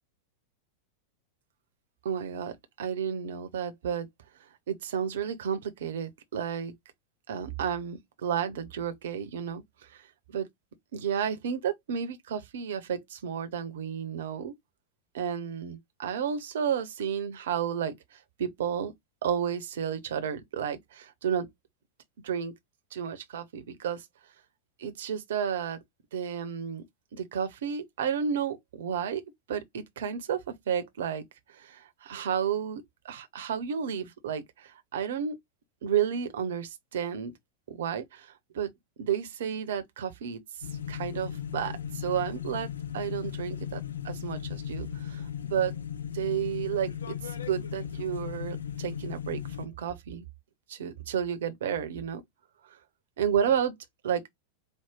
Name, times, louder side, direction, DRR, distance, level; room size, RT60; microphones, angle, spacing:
voice 1, 2.0-4.1 4.7-6.7 7.3-10.0 10.3-10.5 10.9-14.5 15.1-18.9 19.2-21.5 22.2-22.5 22.9-24.1 24.8-25.8 26.1-26.8 27.1-29.2 29.5-31.2 31.5-35.4 35.8-37.3 37.7-38.7 39.0-40.4 40.9-43.8 44.0-45.7 46.1-50.2 50.7-52.2 52.6-52.8 53.2-53.8 54.0-54.2, right 8 dB, 60° right, 0.8 m, -32 dB
sound 1, 40.6-49.7, left 9 dB, 70° left, 0.4 m, -37 dB
4.6 x 2.2 x 3.7 m
figure-of-eight pair, 90°, 0 cm